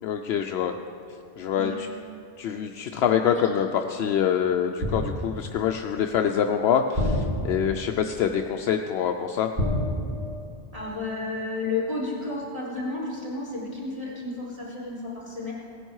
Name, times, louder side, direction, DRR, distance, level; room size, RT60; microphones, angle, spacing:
voice 1, 0.0-0.8 1.4-1.9 2.4-9.5, left 8 dB, 75° left, 4 dB, 0.8 m, -25 dB
sound 1, 4.8-5.5 6.9-7.9 9.6-10.7 10.9-11.2, left 1 dB, 50° right, 2.5 m, -28 dB
voice 2, 10.7-15.5, left 3 dB, 25° left, -6 dB, 4.0 m, -32 dB
17.0 x 9.8 x 4.7 m, 2.7 s
omnidirectional pair, 1.1 m